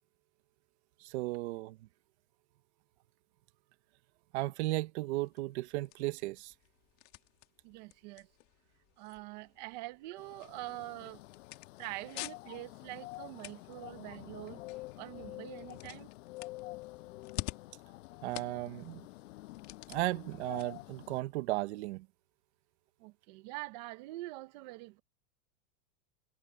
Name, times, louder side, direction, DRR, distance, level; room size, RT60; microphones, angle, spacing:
voice 1, 1.0-1.8 4.3-6.5 18.2-19.0 19.9-22.1, right 19 dB, 45° right, 1.0 m, -35 dB
sound 1, 5.0-22.0, left 19 dB, 30° left, 2.1 m, -50 dB
voice 2, 7.6-8.3 9.0-11.2 11.8-14.6 15.0-16.1 23.0-25.0, right 19 dB, 30° right, 0.7 m, -45 dB
sound 2, 10.2-21.2, left 19 dB, 50° left, 6.9 m, -48 dB
supercardioid pair, 175°, 48 cm